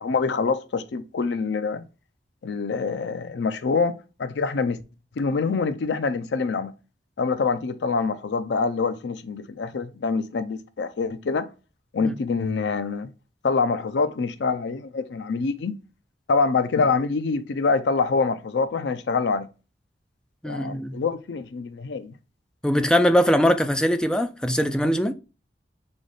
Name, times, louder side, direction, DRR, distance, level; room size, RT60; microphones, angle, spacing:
voice 1, 0.0-1.8 2.4-4.8 5.2-6.7 7.2-11.5 11.9-13.1 13.4-15.7 16.3-19.5 20.5-22.1, left 4 dB, 75° left, 0.5 m, -25 dB
voice 2, 20.4-21.0 22.6-25.1, equal, 5° left, 0.4 m, -21 dB
3.6 x 3.4 x 3.9 m
head